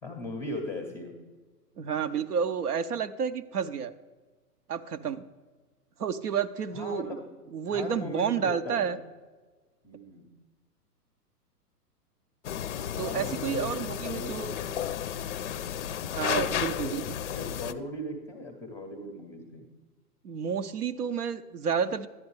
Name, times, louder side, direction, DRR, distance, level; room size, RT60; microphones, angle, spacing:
voice 1, 0.0-1.1 6.7-7.2 7.7-8.9 9.8-10.2 13.0-14.9 16.7-17.0 17.3-19.7, left 1 dB, 5° left, 3 dB, 0.6 m, -38 dB
voice 2, 1.8-3.9 4.7-5.2 6.0-7.1 7.5-9.0 13.0-14.5 16.1-17.0 20.2-22.1, right 7 dB, 70° right, 11 dB, 0.7 m, -30 dB
sound 1, 12.4-17.7, left 10 dB, 50° left, 0.5 m, -33 dB
11.0 x 9.4 x 3.1 m, 1.3 s
figure-of-eight pair, 115°, 47 cm